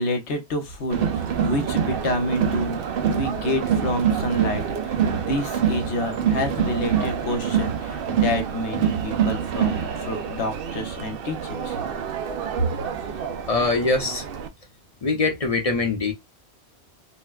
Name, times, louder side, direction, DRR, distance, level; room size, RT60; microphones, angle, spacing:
voice 1, 0.0-2.8 3.1-11.8, left 1 dB, 80° left, 1.2 m, -28 dB
Crowd, 0.9-14.5, right 8 dB, 60° right, 0.7 m, -26 dB
voice 2, 13.4-14.2 15.0-16.1, left 3 dB, 40° left, 0.7 m, -23 dB
4.2 x 2.1 x 2.3 m
omnidirectional pair, 1.1 m